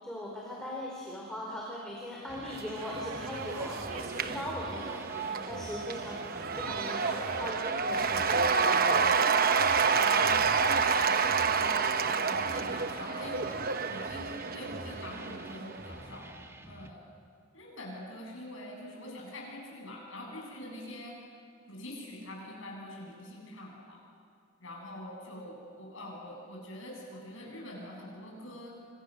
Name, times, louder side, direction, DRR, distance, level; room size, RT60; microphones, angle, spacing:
voice 1, 0.0-6.3 6.6-9.2, left 1 dB, 5° left, -4 dB, 4.3 m, -40 dB
sound 1, 2.3-16.9, right 1 dB, 15° right, 1.3 m, -48 dB
sound 2, 2.4-12.4, right 4 dB, 80° right, 1.5 m, -47 dB
Cheering / Applause / Crowd, 2.5-15.9, right 5 dB, 45° right, 0.9 m, -29 dB
voice 2, 9.5-16.3 16.7-17.1 17.5-21.2 21.7-24.0 24.6-28.7, left 1 dB, 70° left, -2 dB, 7.9 m, -44 dB
29.0 x 25.5 x 6.7 m, 2.1 s
head